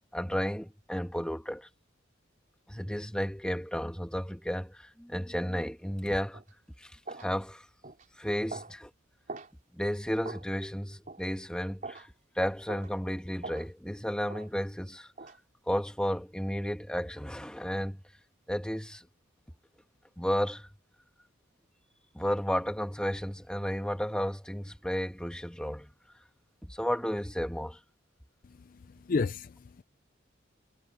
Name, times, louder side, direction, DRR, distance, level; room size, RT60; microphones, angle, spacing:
voice 1, 0.0-1.7 2.7-6.4 6.8-7.7 8.2-8.9 9.7-15.1 15.7-18.0 18.5-19.1 20.2-20.7 22.1-25.9 26.6-27.8, equal, 5° left, 1.8 m, -33 dB
sound 1, 6.3-6.5 7.1-7.3 7.8-8.1 8.5-8.7 9.3-9.5 10.2-10.5 11.1-11.2 11.8-12.1 12.7-12.9 13.4-13.7 14.3-14.5 15.2-15.4, right 3 dB, 40° right, 4.0 m, -42 dB
voice 2, 28.4-29.8, left 4 dB, 45° left, 0.4 m, -33 dB
head